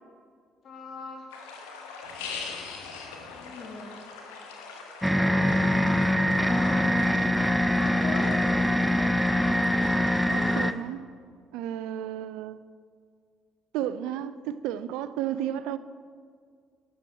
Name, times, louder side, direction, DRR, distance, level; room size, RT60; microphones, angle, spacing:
voice 1, 0.6-1.3 3.3-4.0 6.3-7.0 7.8-8.4, left 3 dB, 50° left, 1.8 m, -40 dB
sound 1, 1.3-10.7, left 4 dB, 75° left, 1.0 m, -42 dB
sound 2, 5.0-10.7, left 1 dB, 5° right, 0.5 m, -23 dB
voice 2, 10.3-11.1 11.5-12.6 13.7-15.8, right 11 dB, 70° right, 0.3 m, -32 dB
12.0 x 7.7 x 4.3 m
figure-of-eight pair, 45°, 0 cm